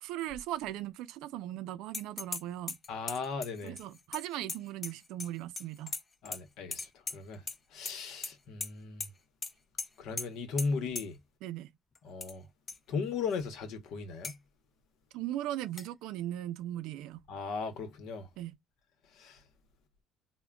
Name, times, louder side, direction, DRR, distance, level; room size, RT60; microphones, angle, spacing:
voice 1, 0.0-2.8 3.6-5.9 11.4-11.7 15.1-17.2 18.4-18.5, right 13 dB, 80° right, 0.4 m, -38 dB
sound 1, 1.9-2.4 2.7-5.3 5.6-6.4 6.7-7.6 7.8-8.3 8.6-8.7 9.0-9.1 9.4-9.5 9.8-9.9 10.2-10.3 10.6-10.7 10.9-11.0 11.9-12.3 12.7-12.8 13.3-13.4 14.2-14.4 15.8-15.9, left 3 dB, 25° left, 0.4 m, -38 dB
voice 2, 2.9-3.8 6.2-7.4 7.7-9.1 10.0-11.2 12.0-12.5 12.9-14.3 17.3-18.3 19.1-19.4, left 4 dB, 65° left, 0.9 m, -37 dB
3.6 x 2.1 x 2.2 m
cardioid pair, 125°, 0 cm